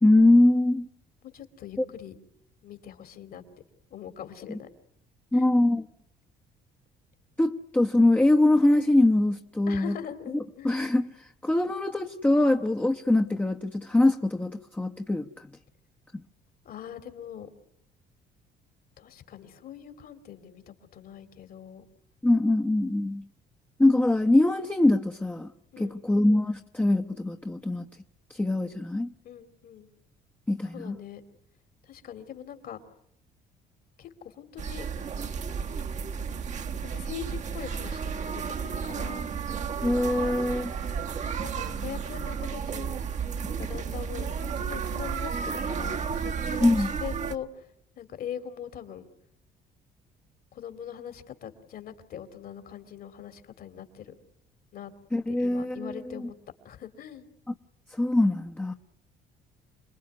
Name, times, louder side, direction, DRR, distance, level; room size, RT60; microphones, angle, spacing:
voice 1, 0.0-0.9 1.8-1.9 4.5-4.6 5.3-5.9 7.4-10.0 10.6-15.3 16.1-16.2 22.2-23.3 23.8-25.5 25.8-27.9 28.3-29.1 30.5-31.0 39.8-40.7 46.6-46.9 55.1-56.3 57.5-57.6 57.9-58.7, left 2 dB, 10° left, 1.0 m, -23 dB
voice 2, 1.2-2.2 2.6-3.4 3.9-4.7 5.3-5.5 9.7-10.7 16.6-17.5 19.0-21.9 25.7-26.1 29.2-29.9 30.7-31.2 31.9-32.8 34.0-34.9 36.8-39.2 41.4-43.0 43.5-47.5 48.0-49.1 50.5-54.1 54.7-54.9 55.3-56.3 56.6-57.3, left 9 dB, 60° left, 2.8 m, -42 dB
sound 1, 34.6-47.4, right 6 dB, 45° right, 1.2 m, -32 dB
27.0 x 20.0 x 9.4 m
cardioid pair, 110°, 17 cm